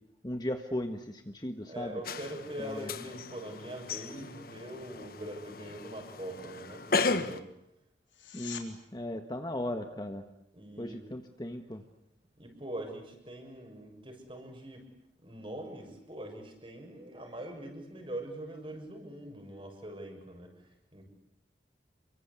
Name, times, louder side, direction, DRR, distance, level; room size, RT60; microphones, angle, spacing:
voice 1, 0.2-2.0 2.6-2.9 8.3-10.2 10.8-11.8, left 1 dB, 20° left, 6 dB, 1.5 m, -37 dB
voice 2, 1.7-7.5 10.5-11.0 12.4-14.9 15.2-21.1, right 1 dB, 30° right, 4 dB, 6.6 m, -43 dB
sound 1, 2.0-7.4, left 4 dB, 55° left, 1.4 m, -35 dB
sound 2, 8.1-8.7 20.0-20.1, left 9 dB, 90° left, 3.8 m, -44 dB
29.5 x 24.0 x 8.4 m, 0.81 s
head